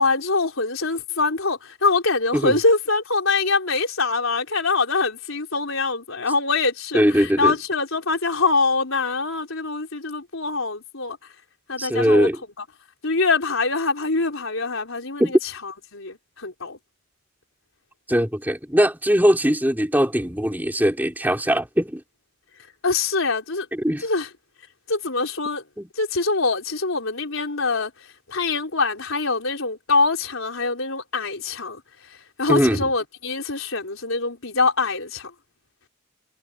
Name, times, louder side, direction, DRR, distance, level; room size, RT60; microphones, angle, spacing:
voice 1, 0.0-11.2 11.7-12.3 13.0-15.4 15.6-16.8 22.8-23.7 24.0-24.3 24.9-25.6 26.0-27.9 28.3-31.8 32.4-35.3, left 3 dB, 80° left, 3.9 m, -24 dB
voice 2, 6.9-7.5 11.8-12.4 15.2-15.4 18.1-22.0 23.7-24.1 25.8-25.9 32.5-32.8, equal, 10° right, 3.6 m, -20 dB
head